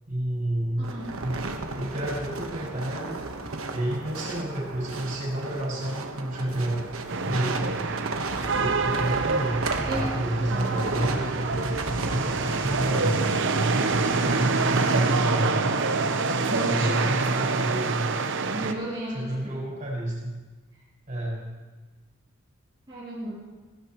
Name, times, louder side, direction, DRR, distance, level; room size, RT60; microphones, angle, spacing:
voice 1, 0.1-0.9 1.2-1.4 1.7-3.2 3.7-6.8 7.2-7.8 8.4-13.1 13.7-16.0 16.7-18.0 19.1-20.3 21.1-21.4, right 1 dB, 40° right, -4 dB, 5.5 m, -30 dB
voice 2, 0.8-1.1 8.5-8.7 9.9-10.2 10.5-10.8 16.5-17.5 18.5-19.4 22.9-23.3, right 1 dB, 25° right, -11 dB, 3.5 m, -34 dB
sound 1, 0.8-15.2, right 3 dB, 90° right, 1.2 m, -34 dB
sound 2, 7.1-18.7, right 3 dB, 65° right, 0.8 m, -26 dB
16.5 x 16.5 x 3.0 m, 1.3 s
head